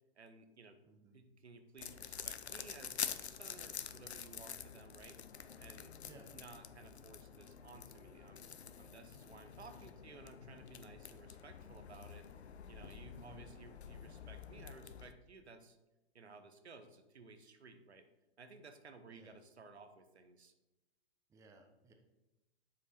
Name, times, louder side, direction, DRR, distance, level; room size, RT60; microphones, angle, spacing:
voice 1, 0.2-0.8 1.1-5.2 5.6-5.9 6.3-8.5 8.8-12.3 12.7-15.8 16.1-18.1 18.4-20.5, right 4 dB, 85° right, 8 dB, 0.8 m, -57 dB
voice 2, 0.8-1.2 6.0-6.3 13.1-13.5 19.1-19.4 21.3-21.9, right 2 dB, 10° right, 4 dB, 0.5 m, -59 dB
sound 1, 1.8-15.1, left 8 dB, 85° left, 0.5 m, -48 dB
7.3 x 4.3 x 4.2 m, 1.0 s
figure-of-eight pair, 105°, 32 cm